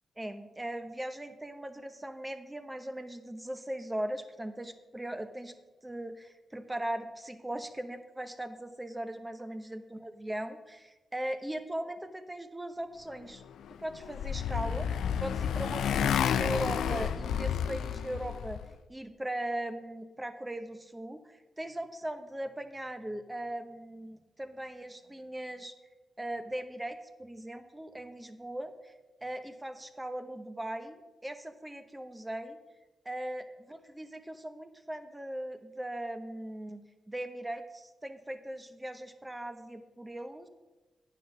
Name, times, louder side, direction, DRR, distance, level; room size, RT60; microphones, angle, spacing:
voice 1, 0.2-5.5 5.8-13.4 13.7-14.9 15.2-18.6 18.9-25.7 26.2-28.9 29.2-32.6 33.0-40.5, right 1 dB, 15° right, 8 dB, 0.8 m, -39 dB
Motorcycle, 13.6-18.7, left 8 dB, 90° left, 0.3 m, -31 dB
9.3 x 5.5 x 5.5 m, 1.1 s
cardioid pair, 65°, 0 cm